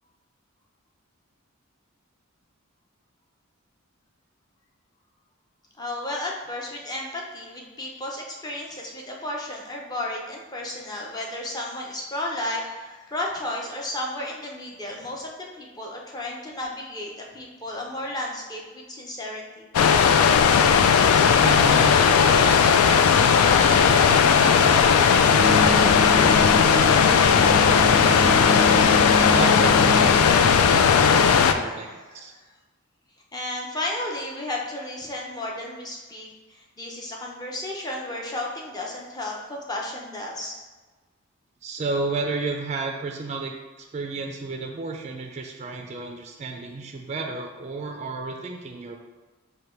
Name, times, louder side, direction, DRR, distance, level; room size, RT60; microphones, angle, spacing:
voice 1, 5.8-15.3 15.5-19.7 31.4-32.2 33.3-40.6, left 1 dB, 20° left, -1 dB, 0.6 m, -33 dB
sound 1, 19.7-31.5, left 6 dB, 90° left, 0.3 m, -17 dB
voice 2, 21.1-32.3 41.6-49.0, right 3 dB, 30° right, 2 dB, 0.4 m, -33 dB
sound 2, 25.2-31.2, equal, 45° left, 0.9 m, -27 dB
5.0 x 2.2 x 4.3 m, 1.3 s
head